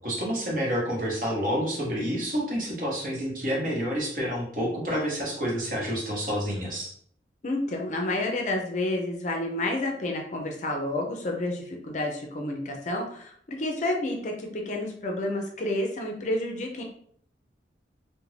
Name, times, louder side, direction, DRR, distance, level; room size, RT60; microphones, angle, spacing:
voice 1, 0.0-6.9, equal, 50° right, -3 dB, 0.9 m, -29 dB
voice 2, 7.4-16.8, left 1 dB, 40° left, 1 dB, 0.4 m, -30 dB
2.5 x 2.1 x 3.2 m, 0.63 s
head